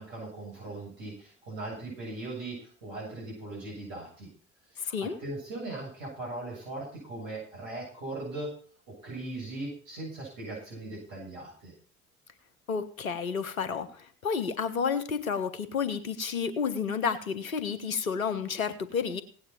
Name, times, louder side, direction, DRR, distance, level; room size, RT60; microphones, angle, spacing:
voice 1, 0.0-4.3 4.7-8.5 9.0-11.7, right 2 dB, 60° right, -4 dB, 7.8 m, -39 dB
voice 2, 4.8-5.2 12.7-19.2, left 6 dB, 80° left, 11 dB, 1.2 m, -31 dB
17.0 x 9.3 x 4.5 m, 0.44 s
figure-of-eight pair, 55°, 41 cm